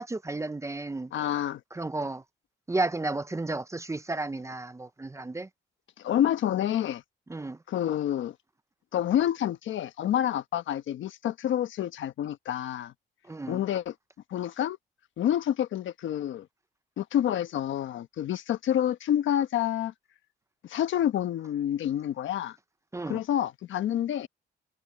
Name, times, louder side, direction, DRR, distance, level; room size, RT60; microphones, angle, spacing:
voice 1, 0.0-1.1 1.7-2.2 2.7-5.5 7.3-7.6 13.2-13.6 22.9-23.2, right 2 dB, 15° right, 0.7 m, -32 dB
voice 2, 1.1-1.6 6.0-7.0 7.7-8.3 8.9-12.9 13.5-13.9 14.3-14.8 15.2-16.5 17.0-19.9 20.6-22.6 23.1-24.3, left 11 dB, 75° left, 1.3 m, -28 dB
cardioid pair, 90°, 20 cm